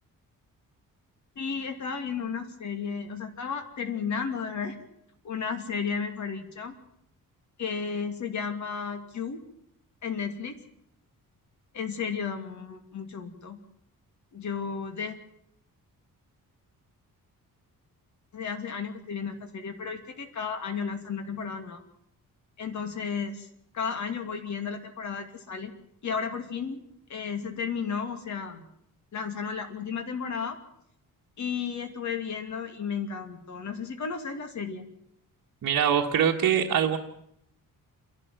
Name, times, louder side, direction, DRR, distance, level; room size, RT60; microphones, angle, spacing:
voice 1, 1.4-4.8 5.2-6.7 7.6-9.4 10.0-10.6 11.7-13.6 14.3-15.2 18.3-21.8 22.6-23.5 23.7-25.7 26.0-26.8 27.1-28.6 29.1-30.6 31.4-34.9, left 6 dB, 55° left, 5 dB, 2.6 m, -33 dB
voice 2, 35.6-37.0, right 8 dB, 60° right, -1 dB, 1.6 m, -23 dB
28.5 x 12.0 x 7.8 m, 0.75 s
wide cardioid pair, 165°, 34 cm